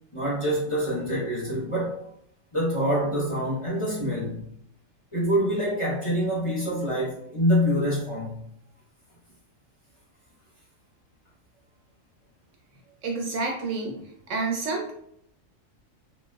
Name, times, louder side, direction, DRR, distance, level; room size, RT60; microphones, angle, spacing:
voice 1, 0.1-2.1 2.5-4.5 5.1-8.4, equal, 30° left, -8 dB, 0.7 m, -26 dB
voice 2, 13.0-14.0 14.3-14.9, right 3 dB, 70° right, 1 dB, 0.8 m, -29 dB
3.0 x 2.7 x 2.2 m, 0.73 s
omnidirectional pair, 1.5 m